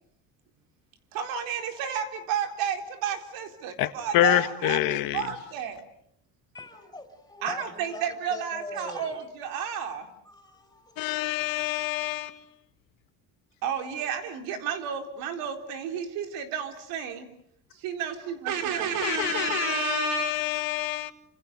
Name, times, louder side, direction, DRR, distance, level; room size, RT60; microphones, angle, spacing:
voice 1, 1.1-5.8 7.4-10.1 13.6-17.2 17.8-20.5, right 8 dB, 90° right, 4.1 m, -31 dB
voice 2, 3.8-5.4 11.0-12.5 19.0-21.1, left 16 dB, 80° left, 1.8 m, -27 dB
voice 3, 6.5-9.6 10.2-11.1 11.4-11.7, left 2 dB, 10° left, 5.7 m, -43 dB
29.0 x 26.5 x 6.7 m
cardioid pair, 135°, 34 cm